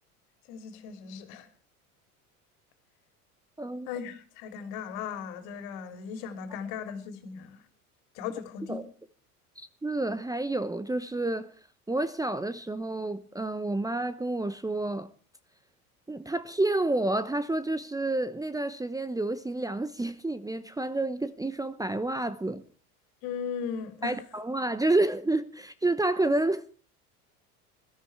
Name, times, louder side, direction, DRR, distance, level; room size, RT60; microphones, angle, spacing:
voice 1, 0.5-1.5 3.9-7.6 8.1-8.9 23.2-24.2, left 7 dB, 60° left, 3.2 m, -37 dB
voice 2, 9.6-11.5 11.9-15.1 16.1-22.6 24.0-26.7, right 2 dB, 10° right, 0.9 m, -29 dB
21.0 x 13.5 x 4.7 m
hypercardioid pair, 75°, 46 cm